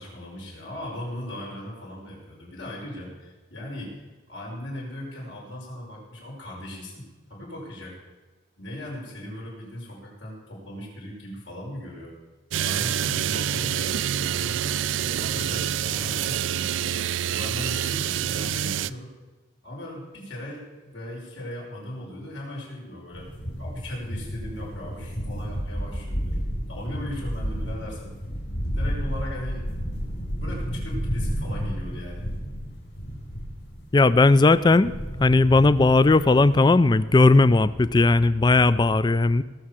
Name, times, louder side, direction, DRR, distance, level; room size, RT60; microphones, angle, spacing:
voice 1, 0.0-7.0 7.3-8.0 8.6-12.1 12.6-16.9 17.3-19.1 19.6-23.3 23.6-26.4 26.7-28.1 28.6-29.9 30.4-32.2, left 1 dB, 80° left, -3 dB, 5.6 m, -38 dB
sound 1, 12.5-18.9, right 10 dB, 80° right, 0.4 m, -27 dB
sound 2, 23.1-36.6, equal, 60° left, 4.5 m, -32 dB
voice 2, 33.9-34.9 35.2-39.4, left 3 dB, 20° left, 16 dB, 0.3 m, -17 dB
19.0 x 6.6 x 7.4 m, 1.3 s
head